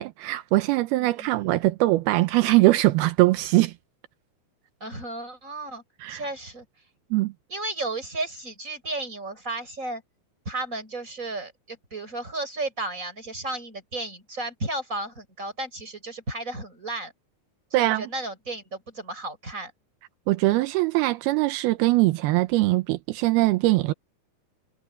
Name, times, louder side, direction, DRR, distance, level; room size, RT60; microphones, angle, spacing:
voice 1, 0.0-3.7 6.0-6.2 7.1-7.3 17.7-18.1 20.3-23.9, right 19 dB, 85° right, 2.6 m, -22 dB
voice 2, 1.0-1.5 4.8-5.8 6.1-6.7 7.5-10.0 10.5-17.1 17.7-19.7, right 2 dB, 20° right, 7.5 m, -33 dB
omnidirectional pair, 4.4 m